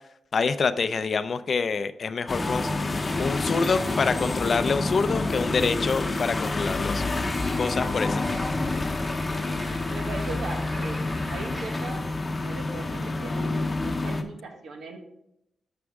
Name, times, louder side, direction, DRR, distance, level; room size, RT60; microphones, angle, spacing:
voice 1, 0.3-2.7 3.2-7.1 7.6-8.4, left 5 dB, 55° left, 13 dB, 0.5 m, -26 dB
sound 1, 2.3-14.2, left 2 dB, 30° left, 0.8 m, -28 dB
sound 2, 6.9-11.9, right 1 dB, 35° right, 2.0 m, -44 dB
voice 2, 9.7-12.0 12.4-15.0, right 3 dB, 85° right, 3 dB, 1.4 m, -39 dB
9.8 x 6.0 x 3.6 m, 0.80 s
cardioid pair, 90°, 0 cm